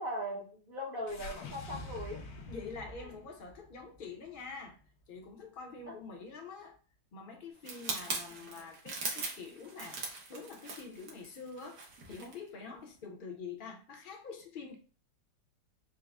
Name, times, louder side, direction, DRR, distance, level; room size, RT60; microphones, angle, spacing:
voice 1, 0.0-2.2 3.0-3.1 5.9-6.0, equal, 40° right, 0.8 m, -39 dB
sound 1, 1.1-5.4, left 2 dB, 75° left, 1.3 m, -47 dB
voice 2, 2.5-4.8 5.1-6.8 7.1-11.8 12.1-14.8, left 4 dB, 45° left, 0.7 m, -46 dB
sound 2, 7.6-12.4 12.8-13.0, right 3 dB, 80° right, 1.6 m, -41 dB
4.7 x 2.1 x 3.4 m
omnidirectional pair, 1.8 m